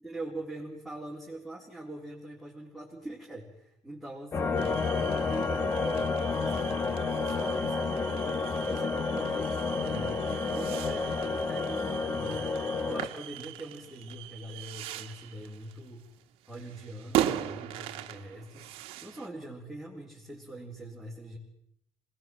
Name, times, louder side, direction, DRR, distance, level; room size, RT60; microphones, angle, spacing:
voice 1, 0.0-7.0 7.2-16.1 16.5-21.4, right 1 dB, ahead, -5 dB, 3.6 m, -43 dB
sound 1, 4.3-13.1, left 4 dB, 25° left, 1.2 m, -30 dB
sound 2, 4.6-19.3, right 12 dB, 85° right, 1.5 m, -38 dB
26.0 x 19.0 x 7.7 m, 0.77 s
cardioid pair, 165°, 9 cm